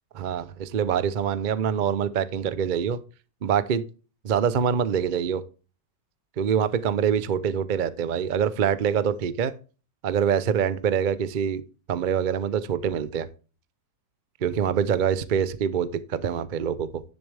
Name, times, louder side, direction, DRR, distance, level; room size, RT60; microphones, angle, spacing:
voice 1, 0.2-3.0 3.4-3.8 4.2-5.4 6.4-9.5 10.0-11.6 11.9-13.3 14.4-17.0, right 8 dB, 70° right, 0.4 m, -25 dB
10.5 x 7.0 x 3.4 m
omnidirectional pair, 1.8 m